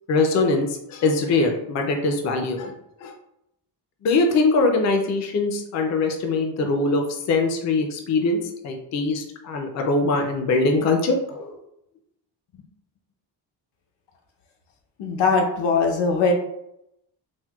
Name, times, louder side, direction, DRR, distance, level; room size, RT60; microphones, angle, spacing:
voice 1, 0.1-2.7 3.0-3.1 4.0-11.5, left 3 dB, 40° left, 3 dB, 0.4 m, -22 dB
voice 2, 15.0-16.3, left 4 dB, 85° left, 2 dB, 0.7 m, -20 dB
4.3 x 2.1 x 2.2 m, 0.80 s
wide cardioid pair, 175°, 42 cm